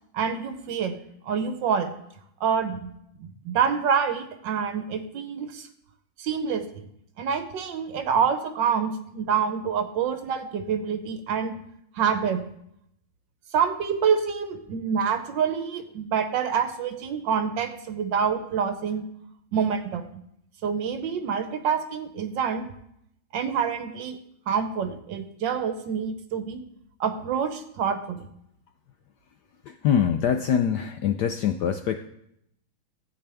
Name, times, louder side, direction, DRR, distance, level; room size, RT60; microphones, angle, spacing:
voice 1, 0.1-1.0 1.2-1.9 2.4-2.9 3.2-5.7 6.2-6.7 7.2-11.6 11.9-12.4 13.5-19.0 19.5-20.2 20.6-22.7 23.3-24.2 24.5-26.6 27.0-28.2, right 7 dB, 65° right, 9 dB, 1.4 m, -27 dB
voice 2, 29.6-32.0, left 8 dB, 75° left, 7 dB, 1.0 m, -24 dB
15.5 x 8.6 x 3.4 m, 0.74 s
omnidirectional pair, 2.3 m